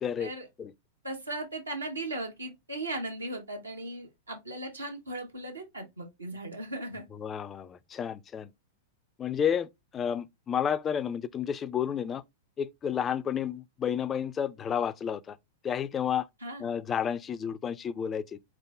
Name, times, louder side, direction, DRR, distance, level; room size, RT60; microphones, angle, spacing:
voice 1, 0.0-0.3 0.6-0.7 7.1-8.5 9.2-12.2 12.6-15.4 15.6-16.3 16.6-18.2, left 8 dB, 25° left, 0.4 m, -31 dB
voice 2, 1.0-7.1 16.4-16.7, right 2 dB, 85° right, 1.4 m, -37 dB
3.8 x 3.7 x 3.4 m
figure-of-eight pair, 100°, 0 cm